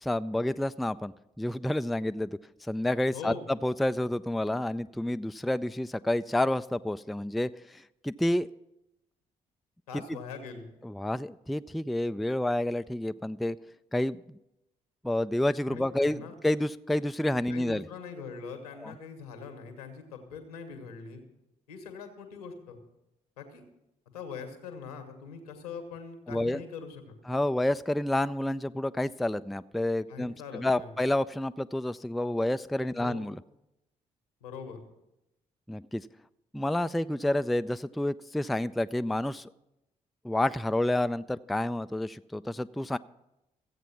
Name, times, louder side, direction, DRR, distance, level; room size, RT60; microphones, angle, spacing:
voice 1, 0.0-2.4 2.7-8.5 10.8-13.6 13.9-14.2 15.0-17.8 18.8-18.9 26.3-26.6 27.3-33.4 35.7-36.1 36.5-39.5 40.2-43.0, left 1 dB, ahead, 13 dB, 0.3 m, -29 dB
voice 2, 3.1-3.4 9.9-10.7 15.7-16.3 17.5-21.2 21.7-22.8 23.4-23.6 24.1-27.1 30.1-30.9 33.0-33.2 34.4-34.8, left 5 dB, 85° left, 6 dB, 1.4 m, -42 dB
14.5 x 8.2 x 5.9 m, 0.90 s
figure-of-eight pair, 45°, 19 cm